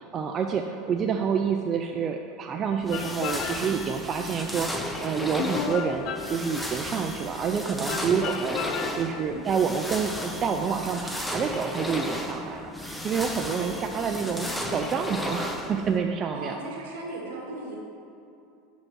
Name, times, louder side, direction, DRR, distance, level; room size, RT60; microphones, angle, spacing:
voice 1, 0.0-8.6 8.9-16.6, right 6 dB, 30° right, 4 dB, 0.4 m, -28 dB
sound 1, 2.8-16.0, left 1 dB, 5° left, 0.7 m, -34 dB
sound 2, 2.9-4.0 5.4-6.9 7.9-9.3, left 7 dB, 45° left, 0.4 m, -34 dB
voice 2, 9.1-9.5 13.5-13.8 14.0-14.7 16.3-17.8, right 2 dB, 80° right, -2 dB, 1.8 m, -38 dB
5.8 x 5.2 x 6.2 m, 2.6 s
supercardioid pair, 130°, 0 cm